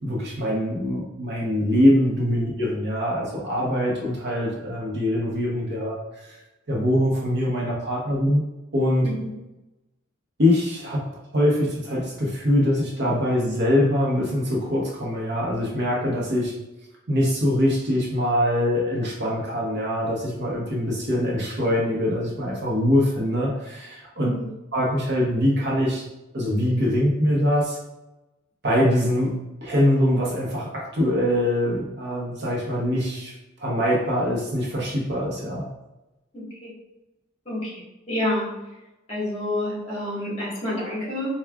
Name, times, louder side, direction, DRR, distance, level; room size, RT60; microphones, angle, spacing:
voice 1, 0.0-6.0 6.7-8.4 8.7-9.1 10.4-11.0 11.3-16.5 17.1-24.3 24.7-26.1 26.3-27.8 28.6-29.3 29.6-33.3 33.6-35.7, left 1 dB, 55° right, -3 dB, 0.9 m, -23 dB
voice 2, 36.3-36.7 37.4-37.7 38.1-38.5 39.1-41.4, left 1 dB, 30° left, -6 dB, 1.4 m, -28 dB
4.6 x 2.3 x 2.3 m, 0.99 s
head